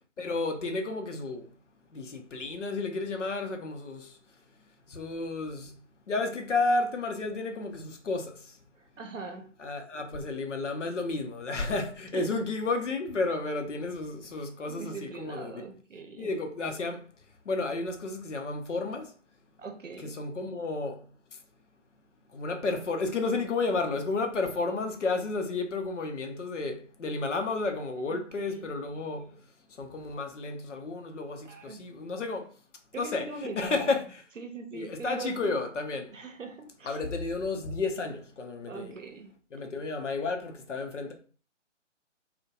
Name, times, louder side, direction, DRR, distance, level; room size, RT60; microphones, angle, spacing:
voice 1, 0.2-1.5 1.9-4.2 4.9-5.7 6.1-8.6 9.6-15.6 16.2-17.1 17.4-19.1 20.0-21.4 22.3-29.4 29.8-32.6 33.0-34.2 34.7-36.1 36.8-39.0 39.5-41.1, left 3 dB, 75° left, 0.6 m, -32 dB
voice 2, 8.8-9.5 12.1-12.4 14.7-16.3 19.6-20.2 28.1-28.7 31.4-31.8 32.9-34.0 34.4-35.5 36.1-37.0 38.7-39.3, right 4 dB, 90° right, 0.6 m, -41 dB
2.2 x 2.2 x 2.7 m
figure-of-eight pair, 140°, 37 cm